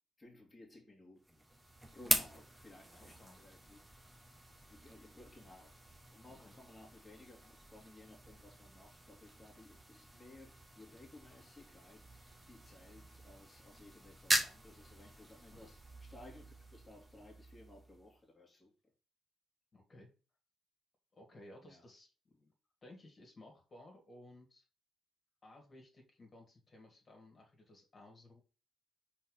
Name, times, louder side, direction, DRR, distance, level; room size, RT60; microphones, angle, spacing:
voice 1, 0.2-1.4 1.9-4.1 4.7-18.7 21.6-21.9, left 2 dB, 15° left, 2.3 m, -58 dB
sound 1, 1.2-18.2, right 1 dB, 10° right, 1.5 m, -42 dB
voice 2, 2.0-2.4 3.1-3.4 6.3-6.5 15.5-15.7 19.7-20.1 21.1-22.5 22.8-24.6 25.4-28.4, left 1 dB, 35° left, 2.3 m, -58 dB
4.6 x 4.3 x 5.6 m
cardioid pair, 90°, 0 cm